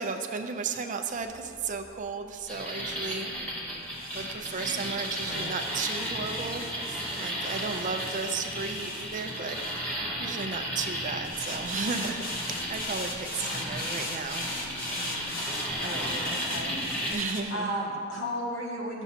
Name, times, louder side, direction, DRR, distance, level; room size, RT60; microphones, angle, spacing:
voice 1, 0.0-3.3 4.1-9.6 10.2-14.5 15.8-16.4 17.1-17.7, right 4 dB, 40° right, 6 dB, 0.5 m, -34 dB
sound 1, 1.1-10.6 11.2-17.4, left 2 dB, 45° left, 0.9 m, -40 dB
sound 2, 2.5-17.1, equal, 5° left, 1.5 m, -34 dB
voice 2, 5.2-5.5 13.4-13.8 15.8-16.8 17.0-19.0, equal, 70° left, -4 dB, 1.9 m, -35 dB
12.5 x 7.0 x 2.8 m, 2.2 s
head